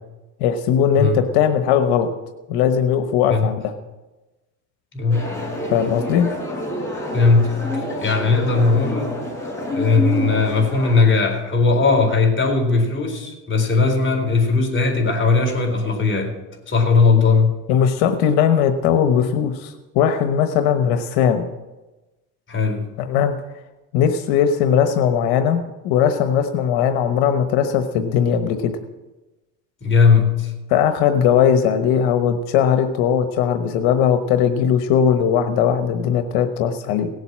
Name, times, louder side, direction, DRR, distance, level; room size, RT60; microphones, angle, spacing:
voice 1, 0.4-2.1 2.5-3.7 5.7-6.3 17.7-21.5 23.0-23.3 23.9-28.7 30.7-37.1, left 8 dB, 85° left, 7 dB, 1.2 m, -19 dB
voice 2, 4.9-5.3 7.1-9.1 9.7-16.3 16.7-17.6 22.5-22.9 29.8-30.5, left 4 dB, 30° left, 2 dB, 4.1 m, -18 dB
sound 1, 5.1-11.0, left 1 dB, 10° left, 6.1 m, -27 dB
18.0 x 8.0 x 7.5 m, 1.1 s
cardioid pair, 100°, 37 cm